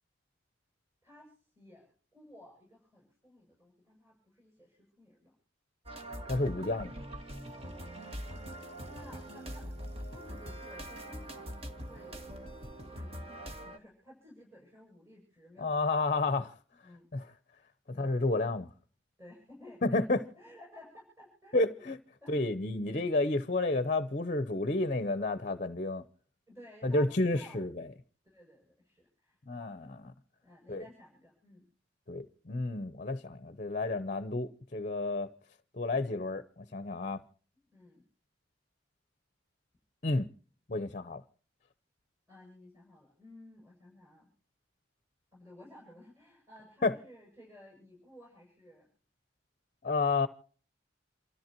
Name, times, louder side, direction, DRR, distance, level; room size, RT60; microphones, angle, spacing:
voice 1, 1.0-5.3 8.7-11.5 11.7-12.5 12.8-16.1 16.8-17.1 17.9-18.2 19.2-21.9 22.2-22.5 26.5-27.7 28.2-29.8 30.4-31.7 37.5-38.0 42.3-44.3 45.3-48.9, left 1 dB, 15° right, 7.5 m, -56 dB
sound 1, 5.9-13.8, equal, 30° right, 1.9 m, -43 dB
voice 2, 6.3-6.9 15.6-16.5 17.1-17.3 18.0-18.7 19.8-20.2 21.5-22.0 22.3-26.0 26.8-27.7 29.5-30.1 30.7-30.8 32.1-35.3 35.7-37.2 40.0-40.3 40.7-41.2 46.8-46.9 49.8-50.3, left 2 dB, 40° left, 0.7 m, -30 dB
28.5 x 13.5 x 2.9 m
head